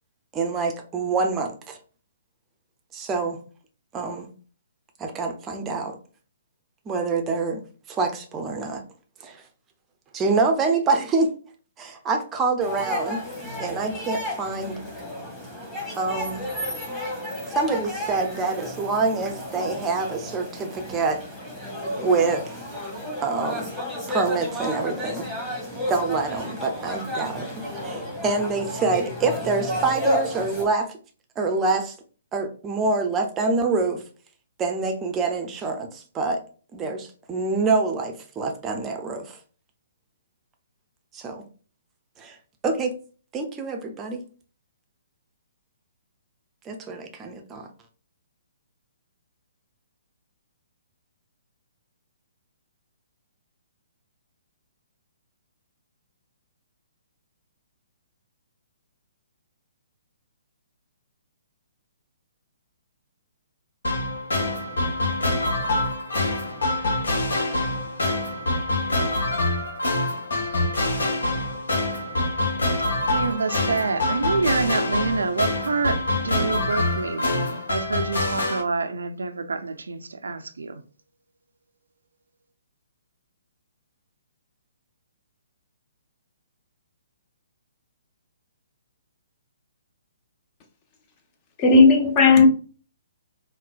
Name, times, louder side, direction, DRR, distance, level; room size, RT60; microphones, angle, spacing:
voice 1, 0.3-1.8 2.9-3.4 3.9-4.3 5.0-6.0 6.9-7.6 7.9-8.8 9.2-9.4 10.1-11.3 11.8-13.2 13.6-14.8 16.0-16.4 17.5-21.2 22.0-22.4 23.2-23.7 24.1-25.3 25.9-31.0 31.4-31.9 32.3-34.0 34.6-36.4 36.7-39.4 41.1-41.4 42.2-42.4 42.6-42.9 43.3-44.2 46.7-47.7, right 3 dB, 20° right, 0.5 m, -26 dB
sound 1, 12.6-30.6, left 1 dB, ahead, 1.0 m, -32 dB
sound 2, 63.8-78.6, left 2 dB, 70° left, 1.0 m, -25 dB
voice 2, 73.1-80.8, right 4 dB, 75° right, 0.4 m, -27 dB
voice 3, 91.6-92.5, left 4 dB, 30° left, 0.7 m, -14 dB
3.8 x 2.1 x 2.4 m
figure-of-eight pair, 130°, 0 cm